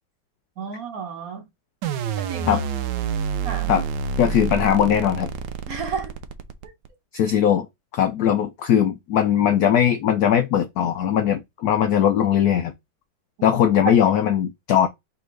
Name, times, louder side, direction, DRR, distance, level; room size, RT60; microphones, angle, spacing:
voice 1, 0.6-1.5 2.2-2.6 3.4-3.7 5.7-6.1 6.6-6.7 13.4-13.6, right 6 dB, 50° right, 1.3 m, -32 dB
sound 1, 1.8-6.9, right 6 dB, 75° right, 1.1 m, -28 dB
voice 2, 4.2-5.3 7.1-7.7 7.9-12.7 13.4-14.9, left 9 dB, 75° left, 0.8 m, -19 dB
4.8 x 3.4 x 3.2 m
omnidirectional pair, 2.2 m